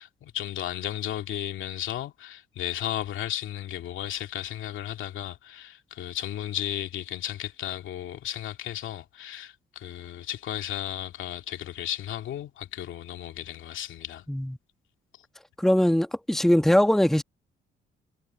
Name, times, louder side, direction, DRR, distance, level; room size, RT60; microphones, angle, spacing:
voice 1, 0.0-14.2, left 11 dB, 80° left, 2.3 m, -34 dB
voice 2, 15.6-17.2, left 1 dB, ahead, 1.4 m, -21 dB
cardioid pair, 90°, 20 cm